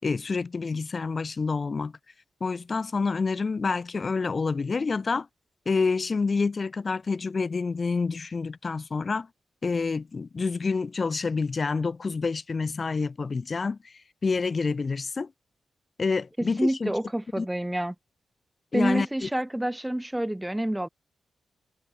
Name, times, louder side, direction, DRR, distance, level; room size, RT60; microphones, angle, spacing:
voice 1, 0.0-1.9 2.4-5.3 5.6-9.3 9.6-13.8 14.2-15.3 16.0-16.9 17.4-17.5 18.7-19.3, left 4 dB, 35° left, 5.0 m, -28 dB
voice 2, 16.4-17.9 18.7-20.9, right 1 dB, 5° right, 2.4 m, -28 dB
wide cardioid pair, 120°, 0 cm